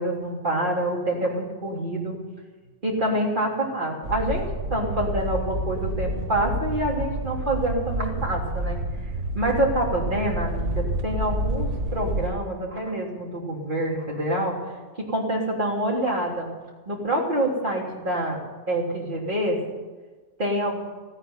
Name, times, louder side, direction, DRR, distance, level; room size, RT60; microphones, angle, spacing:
voice 1, 0.0-2.2 2.8-8.8 9.3-16.5 16.9-18.4 18.7-19.6 20.4-20.8, right 1 dB, 45° right, -3 dB, 3.6 m, -26 dB
sound 1, 4.0-12.3, right 1 dB, 85° right, 1.7 m, -29 dB
15.5 x 9.4 x 9.6 m, 1.3 s
omnidirectional pair, 1.2 m